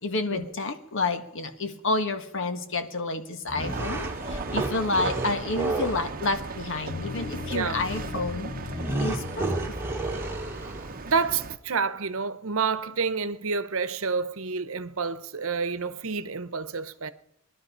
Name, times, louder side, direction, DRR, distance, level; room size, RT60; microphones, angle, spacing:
voice 1, 0.0-8.5 9.0-9.7, left 3 dB, 65° left, 1.5 m, -30 dB
sound 1, 3.5-6.1 8.7-11.0, right 2 dB, 10° right, 2.0 m, -31 dB
sound 2, 3.6-11.6, right 4 dB, 40° right, 0.9 m, -37 dB
sound 3, 6.9-10.8, left 3 dB, 40° left, 0.5 m, -38 dB
voice 2, 7.5-7.8 11.0-17.1, right 5 dB, 70° right, 1.0 m, -29 dB
20.0 x 12.0 x 5.6 m
head